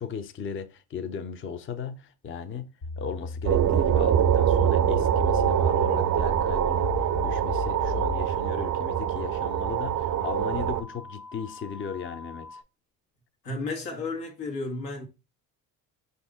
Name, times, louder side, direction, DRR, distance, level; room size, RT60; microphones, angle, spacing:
voice 1, 0.0-2.7 3.0-12.6, left 7 dB, 25° left, 0.5 m, -36 dB
sound 1, 2.8-8.3, left 4 dB, 65° left, 1.4 m, -34 dB
sound 2, 3.4-10.8, right 10 dB, 40° right, 0.5 m, -24 dB
sound 3, 4.1-12.6, left 3 dB, 50° left, 1.0 m, -45 dB
voice 2, 13.4-15.0, left 3 dB, 90° left, 1.3 m, -33 dB
5.3 x 2.7 x 3.4 m
hypercardioid pair, 60°, 47 cm